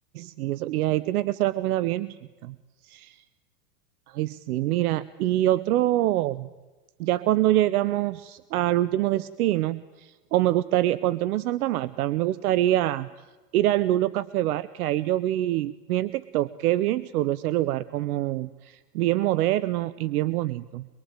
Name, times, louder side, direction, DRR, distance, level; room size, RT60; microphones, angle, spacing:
voice 1, 0.1-2.2 2.4-2.5 2.8-3.2 4.1-6.5 7.0-13.1 13.5-20.9, right 14 dB, 70° right, 17 dB, 1.0 m, -25 dB
24.5 x 23.0 x 9.0 m, 1.2 s
hypercardioid pair, 115°, 46 cm